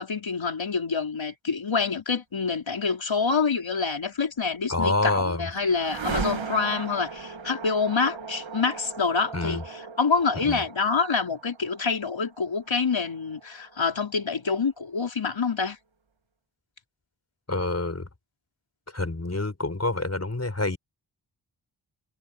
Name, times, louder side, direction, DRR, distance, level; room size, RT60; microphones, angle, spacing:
voice 1, 0.0-15.8, left 5 dB, 80° left, 4.1 m, -27 dB
sound 1, 4.5-14.6, right 5 dB, 90° right, 1.6 m, -38 dB
voice 2, 4.7-5.5 9.3-9.6 10.4-10.6 17.5-18.1 18.9-20.8, left 2 dB, 35° left, 4.9 m, -27 dB
wide cardioid pair, 65°, 45 cm